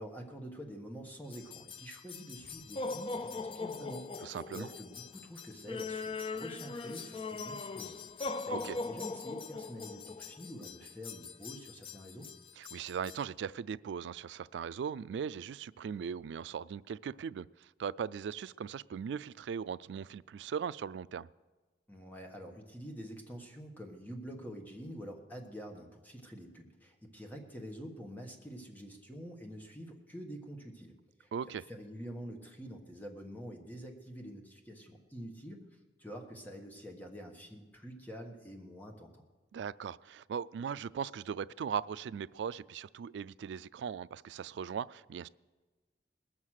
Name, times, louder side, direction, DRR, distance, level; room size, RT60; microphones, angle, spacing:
voice 1, 0.0-12.3 21.9-30.9 31.2-39.2, equal, 10° left, 2 dB, 1.3 m, -47 dB
sound 1, 1.3-13.2, left 3 dB, 30° left, 0.3 m, -41 dB
voice 2, 4.2-4.7 8.5-8.8 12.6-21.3 31.3-31.6 39.5-45.3, right 7 dB, 80° right, 18 dB, 0.3 m, -39 dB
19.5 x 7.4 x 6.4 m, 1.3 s
head